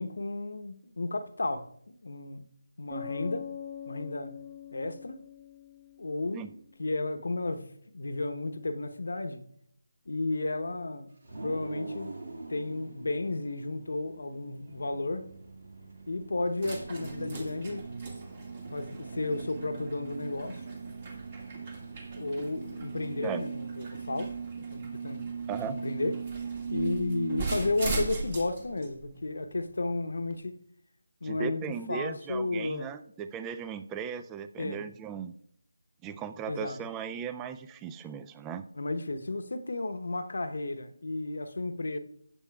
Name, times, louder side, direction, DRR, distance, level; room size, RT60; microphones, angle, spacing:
voice 1, 0.0-2.5 2.8-3.5 3.9-4.3 4.7-5.2 6.0-9.4 10.1-11.1 11.4-12.1 12.5-15.3 16.1-17.9 18.7-20.6 22.2-24.4 24.7-25.3 25.7-26.3 26.7-30.6 31.2-32.9 34.6-34.9 36.5-36.8 38.7-42.0, left 2 dB, 65° left, 0.9 m, -33 dB
Bass guitar, 2.9-6.5, left 7 dB, 10° left, 1.2 m, -42 dB
sound 1, 11.2-24.0, right 2 dB, 55° right, 1.9 m, -48 dB
sound 2, 14.7-30.3, right 4 dB, 35° right, 2.1 m, -38 dB
voice 2, 25.5-25.8 31.2-35.3 36.0-38.6, right 7 dB, 10° right, 0.4 m, -37 dB
14.0 x 8.4 x 2.3 m
figure-of-eight pair, 160°, 0 cm